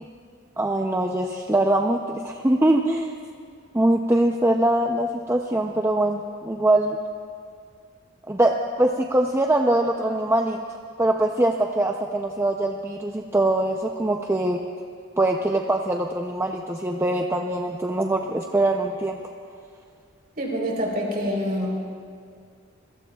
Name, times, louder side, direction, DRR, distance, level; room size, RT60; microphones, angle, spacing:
voice 1, 0.6-3.1 3.7-7.0 8.3-10.6 11.0-14.6 15.2-19.2, right 1 dB, 10° right, 2 dB, 0.5 m, -22 dB
voice 2, 20.4-21.8, equal, 40° right, -1 dB, 3.8 m, -26 dB
26.5 x 22.5 x 2.3 m, 2.1 s
head